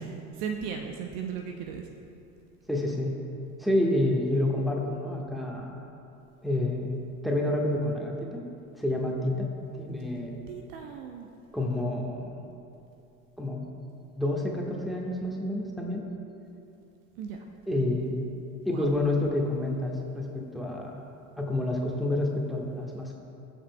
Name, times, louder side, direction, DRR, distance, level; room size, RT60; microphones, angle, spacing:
voice 1, 0.4-1.8 10.5-11.3 17.2-17.4 18.7-18.9, right 7 dB, 50° right, 4 dB, 0.8 m, -36 dB
voice 2, 2.7-3.1 3.6-5.8 6.4-7.0 7.2-8.4 8.8-9.5 9.7-10.4 11.5-12.3 13.4-13.6 14.1-16.0 17.7-18.2 18.6-21.0 21.4-23.2, left 1 dB, ahead, -1 dB, 1.4 m, -28 dB
21.5 x 7.3 x 2.3 m, 2.7 s
figure-of-eight pair, 65°, 42 cm